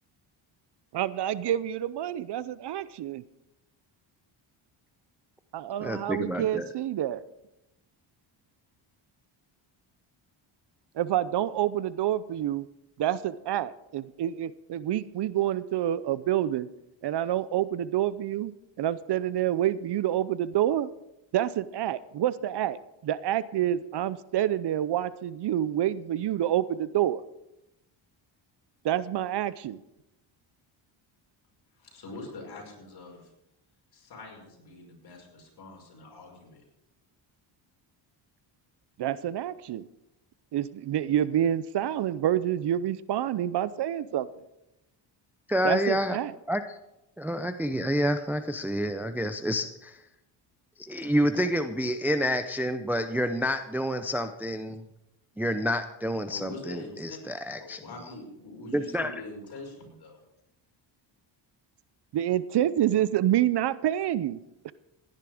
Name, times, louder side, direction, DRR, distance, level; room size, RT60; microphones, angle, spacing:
voice 1, 0.9-3.2 5.5-7.2 11.0-12.7 13.0-16.7 17.0-18.5 18.8-20.9 21.3-27.2 28.8-29.8 39.0-39.8 40.5-44.3 45.6-46.3 62.1-64.7, right 11 dB, 60° right, 17 dB, 0.6 m, -28 dB
voice 2, 5.8-6.7 45.5-46.2 46.5-46.8 47.2-50.0 50.8-54.8 55.4-57.8 58.7-59.1, equal, 5° right, 8 dB, 0.6 m, -28 dB
voice 3, 31.8-33.3 33.9-36.6 56.3-57.2 57.6-60.2, left 2 dB, 50° left, 0 dB, 5.8 m, -44 dB
16.5 x 10.5 x 4.9 m, 0.89 s
cardioid pair, 110°, 47 cm